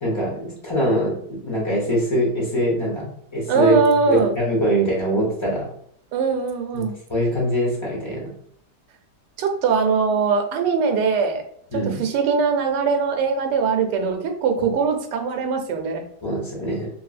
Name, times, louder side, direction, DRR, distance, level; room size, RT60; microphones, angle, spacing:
voice 1, 0.0-3.8 4.1-5.7 6.7-8.3 11.7-12.0 14.6-14.7 16.2-16.9, equal, 25° left, -4 dB, 0.6 m, -23 dB
voice 2, 3.5-4.3 6.1-7.0 9.4-11.4 11.7-16.0, right 5 dB, 90° right, 5 dB, 1.2 m, -21 dB
2.9 x 2.6 x 2.4 m, 0.66 s
omnidirectional pair, 1.8 m